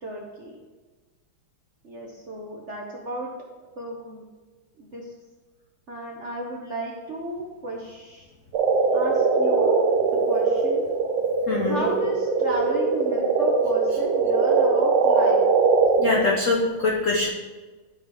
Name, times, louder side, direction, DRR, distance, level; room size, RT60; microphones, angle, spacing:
voice 1, 0.0-0.6 1.8-3.3 3.8-4.3 4.8-5.1 5.9-8.3 8.9-10.9 11.6-15.4, right 1 dB, 60° right, -2 dB, 0.7 m, -34 dB
sound 1, 8.5-16.3, right 4 dB, 75° right, 1.6 m, -21 dB
voice 2, 11.5-11.8 16.0-17.3, left 3 dB, 65° left, -1 dB, 0.7 m, -23 dB
12.0 x 4.1 x 3.4 m, 1.3 s
omnidirectional pair, 2.4 m